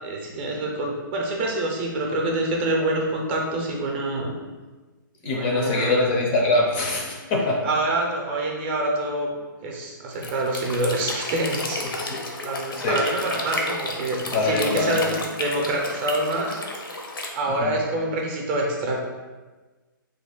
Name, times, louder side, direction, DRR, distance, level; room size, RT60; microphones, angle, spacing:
voice 1, 0.0-4.3 5.2-5.9 7.6-16.6 17.3-19.0, right 1 dB, 30° right, 0 dB, 0.5 m, -26 dB
voice 2, 5.2-7.7 11.8-12.2 12.7-13.0 14.3-15.2 17.5-17.8, left 2 dB, 30° left, 0 dB, 0.4 m, -24 dB
sound 1, 10.1-17.3, left 2 dB, 90° left, 0.6 m, -32 dB
3.3 x 2.1 x 3.7 m, 1.3 s
hypercardioid pair, 150°, 11 cm